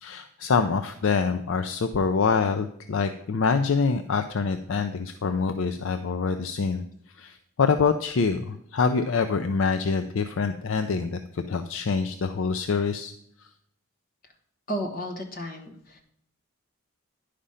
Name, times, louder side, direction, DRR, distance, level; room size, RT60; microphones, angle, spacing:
voice 1, 0.0-6.8 7.2-13.1 13.4-13.5, left 5 dB, 60° left, 9 dB, 0.4 m, -25 dB
voice 2, 14.7-16.0, equal, 40° left, 4 dB, 1.2 m, -33 dB
10.0 x 5.0 x 5.5 m, 0.69 s
head